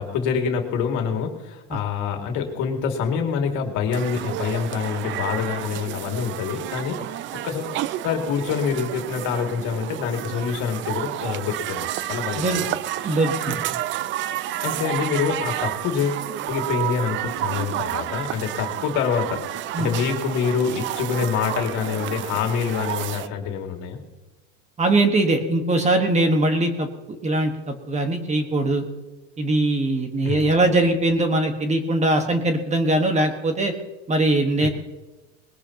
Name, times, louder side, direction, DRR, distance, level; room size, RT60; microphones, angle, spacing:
voice 1, 0.0-7.0 7.4-7.8 8.0-12.7 13.0-13.1 13.5-13.6 14.6-24.0 30.2-30.5 34.6-34.7, left 6 dB, 60° left, 3 dB, 2.4 m, -26 dB
sound 1, 3.9-23.3, right 14 dB, 40° right, 0.4 m, -30 dB
voice 2, 13.0-13.6 19.7-19.9 24.8-26.9 27.2-28.8 29.4-33.7 34.1-34.7, right 2 dB, 20° right, 5 dB, 1.4 m, -21 dB
20.5 x 17.0 x 2.9 m, 1.1 s
supercardioid pair, 130°, 33 cm